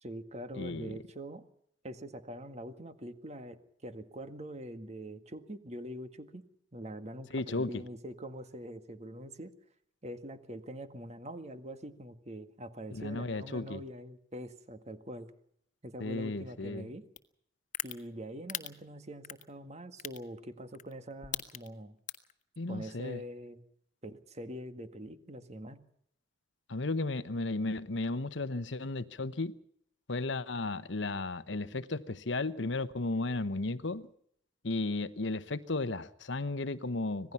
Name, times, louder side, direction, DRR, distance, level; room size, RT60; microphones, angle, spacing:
voice 1, 0.0-1.4 1.8-6.4 6.7-9.5 10.0-15.3 15.8-17.1 17.8-22.0 22.7-23.6 24.0-25.8, equal, 35° right, 1.8 m, -44 dB
voice 2, 0.6-1.0 7.3-7.8 12.9-13.8 16.0-16.9 22.6-23.2 26.7-29.6 30.1-34.1 34.6-37.3, left 2 dB, 70° left, 1.0 m, -34 dB
sound 1, 17.2-17.3 17.7-17.9 18.5-18.7 19.2-19.4 20.0-20.2 20.7-20.9 21.2-21.7 22.1-22.3, left 10 dB, 40° left, 1.5 m, -36 dB
26.0 x 18.5 x 5.7 m
head